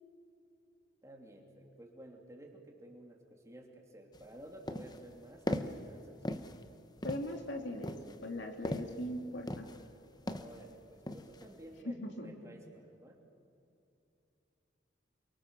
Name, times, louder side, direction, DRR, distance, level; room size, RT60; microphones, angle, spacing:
voice 1, 1.0-6.4 10.2-13.2, right 1 dB, 15° right, 1 dB, 2.9 m, -53 dB
sound 1, 4.1-4.3 4.7-5.1 5.5-5.9 6.3-6.6 7.0-7.4 7.8-9.1 9.5-9.9 10.3-10.6 11.1-11.5, left 1 dB, 20° left, 0.9 m, -38 dB
voice 2, 7.0-7.9 8.2-9.7 11.8-12.3, left 1 dB, 70° left, 3 dB, 2.9 m, -40 dB
28.5 x 23.5 x 7.1 m, 2.8 s
head